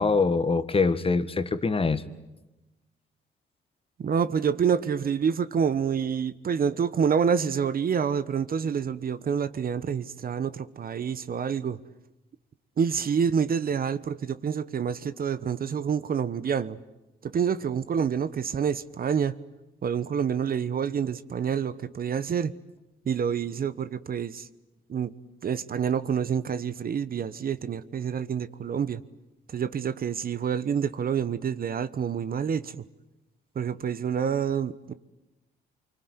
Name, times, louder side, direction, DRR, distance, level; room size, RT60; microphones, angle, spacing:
voice 1, 0.0-2.0, left 4 dB, 30° left, 1.7 m, -24 dB
voice 2, 4.0-11.8 12.8-16.8 17.2-19.3 19.8-22.5 23.1-24.5 24.9-25.1 25.4-29.0 29.5-32.8 33.5-34.9, right 7 dB, 50° right, 1.1 m, -27 dB
25.5 x 24.0 x 9.7 m
cardioid pair, 90°, 20 cm